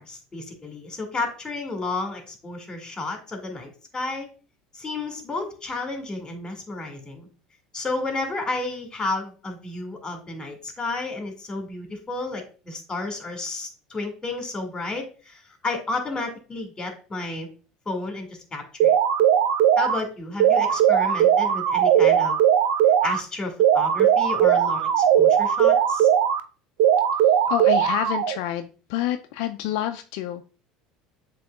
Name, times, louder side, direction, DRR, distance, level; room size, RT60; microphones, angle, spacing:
voice 1, 0.0-4.3 4.7-7.3 7.7-17.5 17.9-18.9 19.8-22.4 23.0-26.1, left 2 dB, 20° left, 4 dB, 2.1 m, -32 dB
sound 1, 18.8-20.0 20.4-23.2 23.6-26.4 26.8-28.4, right 9 dB, 65° right, 0.5 m, -19 dB
voice 2, 27.5-30.4, left 12 dB, 70° left, 8 dB, 0.3 m, -28 dB
7.6 x 3.0 x 2.3 m, 0.36 s
hypercardioid pair, 85°, 3 cm